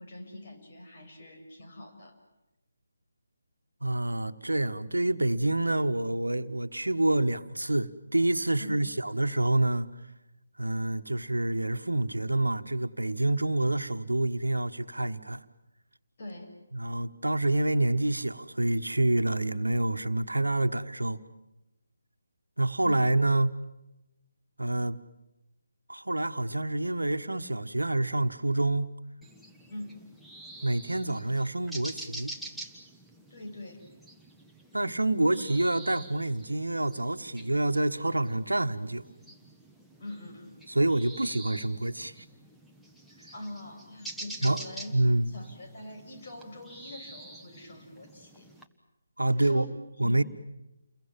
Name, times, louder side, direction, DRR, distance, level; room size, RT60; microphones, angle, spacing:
voice 1, 0.0-2.1 8.6-8.8 16.2-16.5 22.8-23.1 29.7-30.0 33.3-33.8 40.0-40.6 43.3-44.9 45.3-48.5 49.4-49.7 50.0-50.3, left 1 dB, 40° left, 6.4 m, -43 dB
voice 2, 3.8-9.9 10.6-15.4 16.7-21.2 22.6-23.6 24.6-25.0 25.9-28.9 30.6-32.3 34.7-39.0 40.7-42.2 44.4-44.6 44.9-45.3 49.2-49.7 50.0-50.2, right 2 dB, 80° right, 1.4 m, -27 dB
sound 1, 29.2-48.6, right 1 dB, ahead, 1.3 m, -47 dB
29.5 x 22.5 x 7.4 m
figure-of-eight pair, 150°, 0 cm